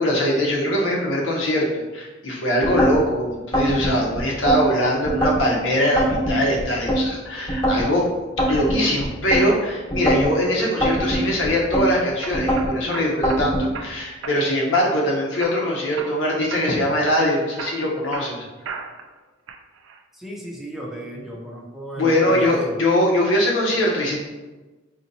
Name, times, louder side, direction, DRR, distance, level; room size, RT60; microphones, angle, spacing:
voice 1, 0.0-1.7 1.9-8.0 8.5-18.5 21.1-21.2 22.0-24.2, equal, 85° left, -3 dB, 0.8 m, -22 dB
sound 1, 2.6-3.0 3.5-4.6 5.1-5.5 6.0-7.0 7.5-7.9 8.4-9.4 9.9-10.3 10.8-11.9 12.3-12.7 13.2-13.7, equal, 25° left, 1.0 m, -22 dB
sound 2, 11.3-11.7 12.2-13.4 13.7-14.4 14.7-15.1 15.4-16.2 16.5-16.7 17.1-19.1 19.5-20.0, right 5 dB, 85° right, 0.4 m, -35 dB
voice 2, 20.1-22.8, right 1 dB, ahead, -3 dB, 0.5 m, -34 dB
4.0 x 2.8 x 2.7 m, 1.2 s
head